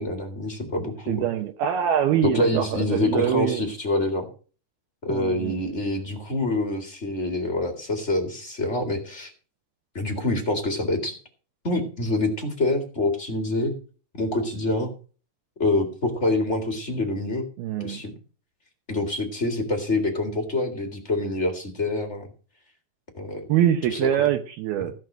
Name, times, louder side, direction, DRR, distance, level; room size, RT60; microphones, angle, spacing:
voice 1, 0.0-1.2 2.2-4.3 5.0-9.3 9.9-11.2 11.6-13.7 14.1-14.9 15.6-17.4 17.8-18.1 18.9-22.3 23.1-23.5 23.9-24.1 24.8-24.9, left 2 dB, 30° left, 1.2 m, -26 dB
voice 2, 1.1-3.6 5.1-5.6 17.6-18.0 23.5-24.9, right 10 dB, 75° right, 2.6 m, -24 dB
15.5 x 6.5 x 6.2 m
omnidirectional pair, 4.9 m